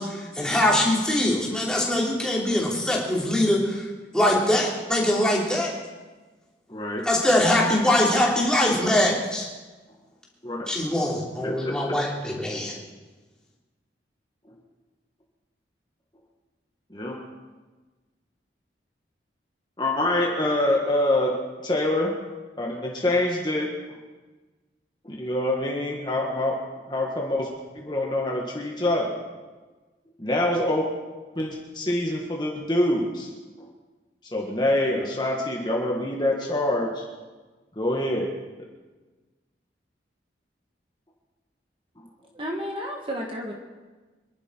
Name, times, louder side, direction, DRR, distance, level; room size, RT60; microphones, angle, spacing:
voice 1, 0.0-3.9 4.1-5.7 7.0-9.5 10.7-12.7, left 1 dB, 5° left, -4 dB, 3.1 m, -22 dB
voice 2, 6.7-7.1 10.4-10.7 11.4-11.7 16.9-17.2 19.8-21.3 21.6-22.1 22.6-23.7 25.0-26.6 26.9-27.5 27.7-29.2 30.2-30.9 31.3-33.3 33.6-33.7 34.3-37.1 37.7-38.3, left 1 dB, 25° left, -1 dB, 1.7 m, -25 dB
voice 3, 42.3-43.5, equal, 30° right, 1 dB, 1.6 m, -32 dB
25.5 x 11.5 x 4.6 m, 1.3 s
head